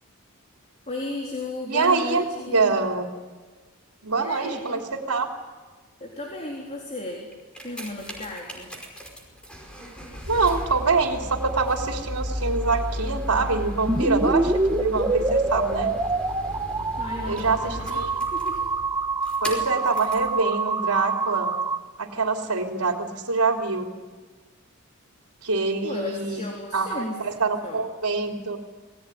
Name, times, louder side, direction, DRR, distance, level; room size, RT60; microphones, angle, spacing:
voice 1, 0.9-2.8 4.2-4.8 6.0-7.3 7.6-8.7 10.2-10.3 17.0-18.0 18.3-18.7 25.8-27.3 27.6-27.8, left 2 dB, 30° left, 0 dB, 3.7 m, -35 dB
voice 2, 1.7-3.1 4.0-5.3 10.3-15.9 17.2-18.1 19.4-21.5 22.0-23.9 25.4-26.4 26.7-28.6, right 4 dB, 85° right, 2 dB, 3.2 m, -25 dB
sound 1, 7.3-20.3 21.0-21.1, equal, 5° left, 5.0 m, -35 dB
sound 2, 13.9-21.8, right 3 dB, 20° right, 1.1 m, -26 dB
28.0 x 19.5 x 9.9 m, 1.4 s
head